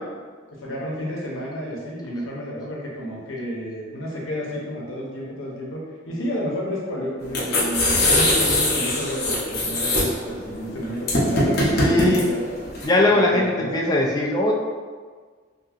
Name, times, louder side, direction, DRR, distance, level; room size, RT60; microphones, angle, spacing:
voice 1, 0.6-12.5 13.1-13.7, equal, 85° left, -4 dB, 0.7 m, -31 dB
sound 1, 7.2-12.9, left 1 dB, 50° left, 0.6 m, -22 dB
voice 2, 11.8-12.3 12.8-14.5, left 1 dB, 20° left, -1 dB, 0.3 m, -20 dB
2.8 x 2.6 x 2.4 m, 1.5 s
head